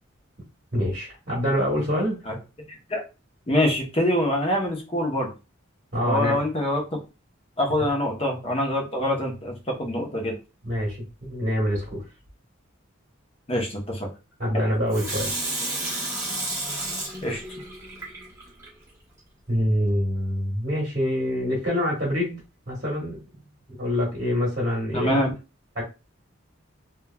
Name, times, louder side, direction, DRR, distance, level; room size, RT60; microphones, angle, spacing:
voice 1, 0.7-2.2 5.9-6.4 7.8-7.9 10.6-12.0 14.4-15.3 19.5-22.4 22.7-23.2 23.8-25.3 25.7-25.8, equal, 40° right, -4 dB, 1.1 m, -25 dB
voice 2, 3.5-5.3 6.1-7.0 7.6-10.3 13.5-14.1 17.2-17.4 24.9-25.3, left 1 dB, 30° left, 1 dB, 0.7 m, -25 dB
Water tap faucet / Sink (filling or washing), 14.9-18.7 19.2-19.3, right 2 dB, 15° right, 0.9 m, -31 dB
2.9 x 2.3 x 2.2 m, 0.29 s
head